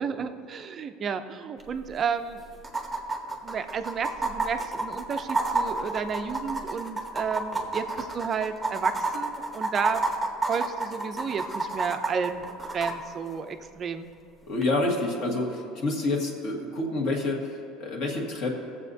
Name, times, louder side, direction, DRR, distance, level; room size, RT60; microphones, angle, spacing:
voice 1, 0.0-2.4 3.4-10.0 10.5-12.4 12.7-14.1, right 6 dB, 25° right, 8 dB, 0.5 m, -32 dB
sound 1, 1.6-1.7 1.9-2.0 2.6-12.9 14.6-14.7, right 3 dB, ahead, 0.9 m, -29 dB
voice 2, 14.5-18.5, left 2 dB, 45° left, 0 dB, 1.6 m, -28 dB
18.5 x 7.5 x 2.7 m, 2.6 s
cardioid pair, 170°, 0 cm